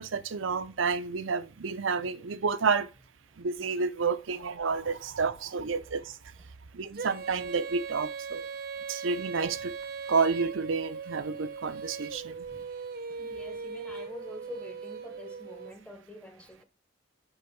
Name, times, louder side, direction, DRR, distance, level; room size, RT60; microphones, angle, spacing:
voice 1, 0.0-2.9 3.4-6.2 6.7-8.4 8.9-9.7 10.1-12.4, right 5 dB, 90° right, 0.6 m, -30 dB
Female singing, 6.9-15.8, right 5 dB, 50° right, 0.6 m, -39 dB
voice 2, 13.2-16.6, left 1 dB, 5° left, 1.0 m, -46 dB
7.8 x 4.5 x 4.6 m
head